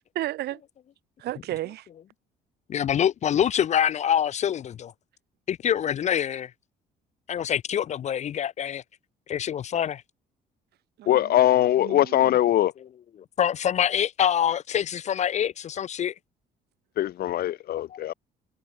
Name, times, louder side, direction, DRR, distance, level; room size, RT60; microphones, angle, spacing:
voice 1, 0.1-0.6 1.2-1.9 11.0-12.4, right 15 dB, 75° right, 4.9 m, -34 dB
voice 2, 2.7-4.9 5.5-6.5 7.3-8.8 9.3-10.0 13.4-16.1 17.9-18.0, left 9 dB, 45° left, 0.6 m, -25 dB
voice 3, 11.1-12.7 17.0-18.1, left 13 dB, 65° left, 2.2 m, -21 dB
cardioid pair, 110°, 17 cm